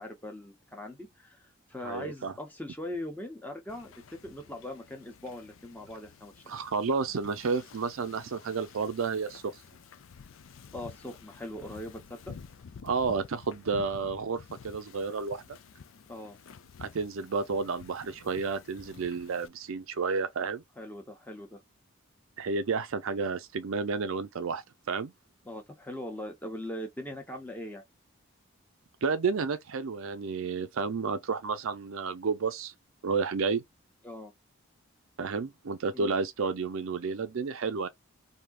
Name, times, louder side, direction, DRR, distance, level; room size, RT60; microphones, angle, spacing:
voice 1, 0.0-6.4 10.7-12.3 16.1-16.4 20.8-21.6 25.4-27.8 34.0-34.3 35.9-36.1, left 1 dB, 10° left, 0.8 m, -41 dB
voice 2, 1.8-2.3 6.5-9.4 12.8-15.4 16.8-20.6 22.4-25.1 29.0-32.7 33.0-33.6 35.2-37.9, right 4 dB, 70° right, 0.5 m, -31 dB
Wind / Ocean, 3.7-19.5, left 6 dB, 65° left, 0.4 m, -51 dB
3.4 x 2.7 x 2.3 m
head